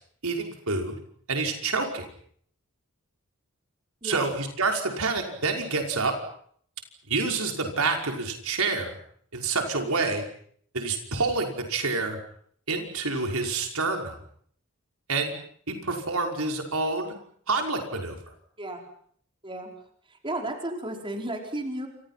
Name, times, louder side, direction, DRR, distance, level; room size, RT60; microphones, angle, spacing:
voice 1, 0.2-1.0 1.3-2.1 4.0-6.1 7.1-9.0 9.3-10.3 10.7-12.2 12.7-14.2 15.1-15.3 15.7-17.1 17.5-18.2, right 3 dB, 85° right, 3 dB, 5.6 m, -27 dB
voice 2, 20.1-21.9, right 1 dB, 25° right, 2 dB, 4.8 m, -33 dB
29.0 x 28.0 x 5.9 m, 0.63 s
head